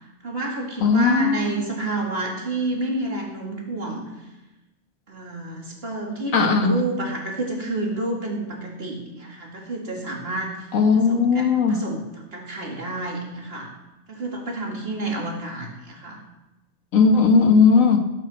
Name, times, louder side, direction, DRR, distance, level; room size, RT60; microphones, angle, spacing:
voice 1, 0.2-4.0 5.1-10.7 11.0-13.7 14.1-16.2, right 2 dB, 50° right, 0 dB, 2.6 m, -29 dB
voice 2, 0.8-1.4 6.3-6.8 10.7-11.8 16.9-18.0, left 5 dB, 90° left, 5 dB, 1.7 m, -17 dB
18.0 x 8.5 x 4.4 m, 1.0 s
omnidirectional pair, 1.3 m